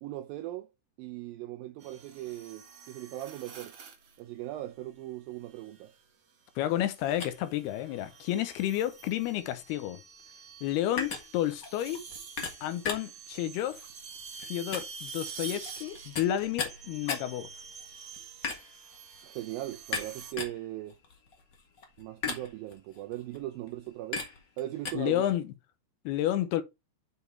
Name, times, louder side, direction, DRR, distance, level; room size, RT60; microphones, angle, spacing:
voice 1, 0.0-0.7 1.0-3.8 4.2-5.9 19.2-21.0 22.0-24.3 24.6-25.3, right 14 dB, 85° right, 2.1 m, -39 dB
sound 1, 1.8-4.2 5.6-6.0 6.8-20.3, right 6 dB, 55° right, 1.7 m, -47 dB
voice 2, 6.6-10.0 10.6-12.0 12.6-13.8 14.5-17.5 24.9-25.5 26.1-26.6, left 12 dB, 80° left, 2.7 m, -31 dB
sound 2, 7.1-24.9, left 5 dB, 60° left, 1.1 m, -40 dB
7.0 x 6.5 x 3.3 m
omnidirectional pair, 4.8 m